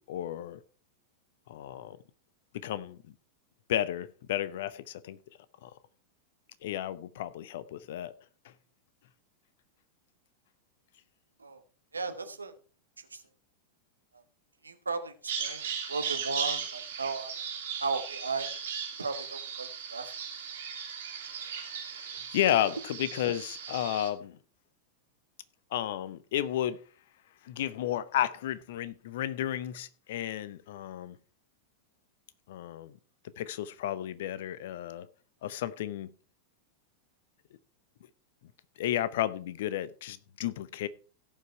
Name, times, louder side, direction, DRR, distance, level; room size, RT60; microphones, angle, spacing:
voice 1, 0.1-0.6 1.5-2.0 2.5-3.0 3.7-5.2 5.6-5.7 6.6-8.1 21.3-24.4 25.7-26.8 27.4-31.2 32.5-33.0 33.4-35.1 35.4-36.1 38.8-40.9, left 12 dB, 55° left, 0.7 m, -33 dB
voice 2, 11.9-12.5 13.1-13.2 14.6-17.4 17.8-18.5 19.0-20.1, right 4 dB, 80° right, 1.2 m, -35 dB
Bird vocalization bird call bird song, 15.3-24.1, right 7 dB, 60° right, 2.9 m, -37 dB
16.5 x 5.5 x 4.5 m
figure-of-eight pair, 90°, 0 cm